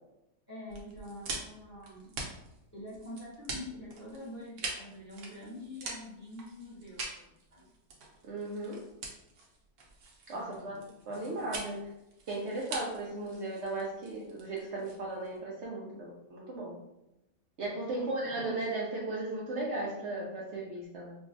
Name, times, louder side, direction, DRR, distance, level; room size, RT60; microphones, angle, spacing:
voice 1, 0.5-2.1 2.7-7.7 10.3-10.8 17.9-18.2, left 1 dB, 15° left, -6 dB, 0.8 m, -45 dB
sound 1, 0.7-15.4, right 3 dB, 80° right, 1.3 m, -44 dB
voice 2, 8.2-8.8 10.3-11.9 12.3-16.7 17.6-21.2, right 2 dB, 60° right, -4 dB, 0.8 m, -36 dB
4.9 x 2.3 x 2.5 m, 0.89 s
omnidirectional pair, 1.6 m